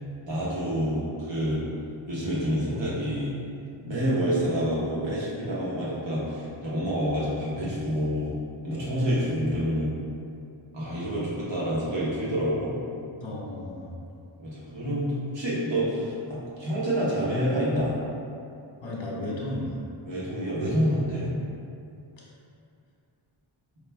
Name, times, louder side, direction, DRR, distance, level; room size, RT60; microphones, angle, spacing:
voice 1, 0.2-1.6 2.1-3.3 3.8-8.3 8.6-9.9 10.7-12.7 14.4-17.9 20.0-21.3, equal, 60° right, -8 dB, 1.0 m, -28 dB
voice 2, 13.2-14.0 18.8-19.8 22.2-22.3, left 1 dB, 60° left, -5 dB, 0.9 m, -34 dB
4.8 x 2.2 x 3.4 m, 2.5 s
wide cardioid pair, 85°, 49 cm